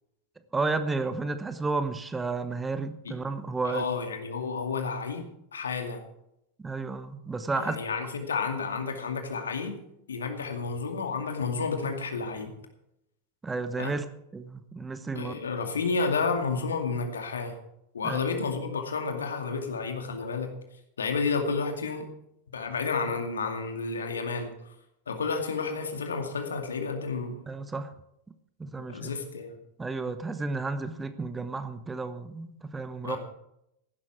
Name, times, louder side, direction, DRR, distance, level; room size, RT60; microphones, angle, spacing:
voice 1, 0.5-3.8 6.6-7.8 13.4-14.0 14.3-15.3 18.0-18.3 27.5-27.9 28.6-29.1 29.8-33.2, right 3 dB, 10° right, 11 dB, 1.0 m, -32 dB
voice 2, 3.6-5.2 5.5-6.0 7.5-9.8 10.1-12.5 13.8-14.0 15.1-17.5 17.9-20.5 21.0-22.1 22.5-24.7 25.1-27.4 28.9-29.6 33.0-33.2, left 4 dB, 70° left, 5 dB, 2.3 m, -31 dB
15.5 x 12.0 x 4.5 m, 0.81 s
figure-of-eight pair, 90°, 0 cm